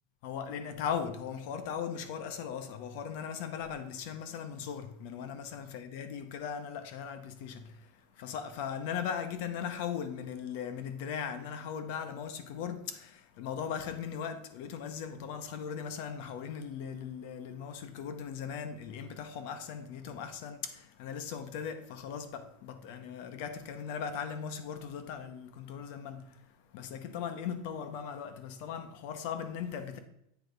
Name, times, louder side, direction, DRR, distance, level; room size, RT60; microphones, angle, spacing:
voice 1, 0.2-30.0, left 7 dB, 50° left, 0.8 m, -38 dB
8.2 x 3.4 x 5.2 m
supercardioid pair, 170°, 0 cm